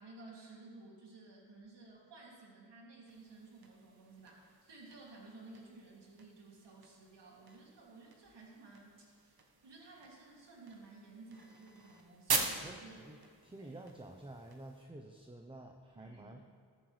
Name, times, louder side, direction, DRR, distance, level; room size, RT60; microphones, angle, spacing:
voice 1, 0.0-9.4 9.6-13.0 13.6-13.8 15.9-16.4, right 3 dB, 80° right, -3 dB, 2.8 m, -55 dB
sound 1, 3.1-14.9, right 4 dB, 60° right, 1.6 m, -44 dB
voice 2, 12.6-16.4, right 1 dB, 10° right, 3 dB, 0.9 m, -51 dB
14.0 x 13.5 x 3.4 m, 2.2 s
cardioid pair, 65°, 41 cm